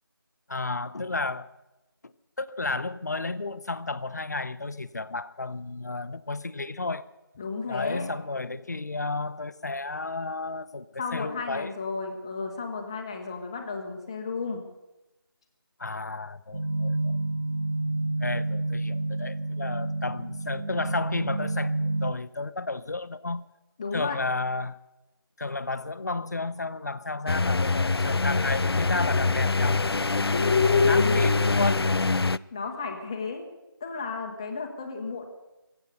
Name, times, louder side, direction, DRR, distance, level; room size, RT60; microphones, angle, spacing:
voice 1, 0.5-1.5 2.4-7.1 7.7-11.7 15.8-17.2 18.2-23.5 23.9-24.8 25.4-29.8 30.8-31.9, left 3 dB, 45° left, 14 dB, 0.7 m, -32 dB
voice 2, 7.4-8.1 11.0-14.6 23.8-24.2 30.3-31.3 32.5-33.5 33.8-35.2, left 4 dB, 15° left, 3 dB, 1.0 m, -30 dB
sound 1, 16.5-22.1, right 2 dB, 75° right, 1.7 m, -29 dB
sound 2, 27.3-32.4, left 3 dB, 85° left, 0.5 m, -24 dB
23.0 x 8.1 x 6.5 m, 0.99 s
figure-of-eight pair, 165°, 13 cm